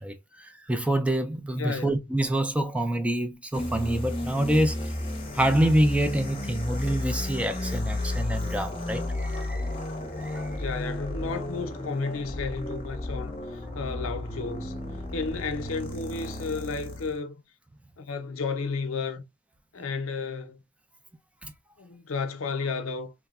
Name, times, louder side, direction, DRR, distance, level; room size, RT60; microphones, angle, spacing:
voice 1, 0.0-5.0 5.3-9.7 10.2-10.6 21.4-21.5, right 1 dB, 5° right, 0.3 m, -27 dB
voice 2, 1.6-2.0 10.6-17.4 18.0-19.2 19.7-20.6 21.8-23.1, left 4 dB, 75° left, 0.6 m, -33 dB
sound 1, 3.5-17.2, left 1 dB, 25° left, 0.7 m, -33 dB
3.4 x 2.0 x 2.3 m
head